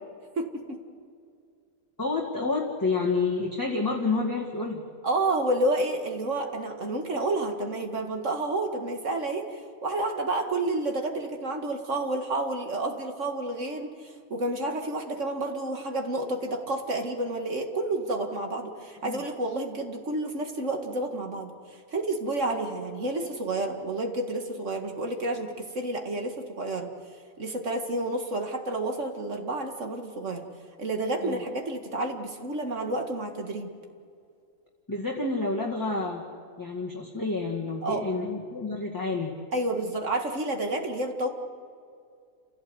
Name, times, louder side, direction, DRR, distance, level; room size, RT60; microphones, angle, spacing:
voice 1, 0.4-0.8 5.0-21.5 21.9-26.9 27.4-30.5 30.8-33.7 37.8-38.1 39.5-41.3, right 2 dB, 60° right, 3 dB, 2.2 m, -30 dB
voice 2, 2.0-4.8 19.0-19.2 31.2-31.4 34.9-36.2 36.6-39.3, left 3 dB, 15° left, -2 dB, 2.0 m, -29 dB
29.5 x 16.0 x 8.0 m, 2.3 s
omnidirectional pair, 1.5 m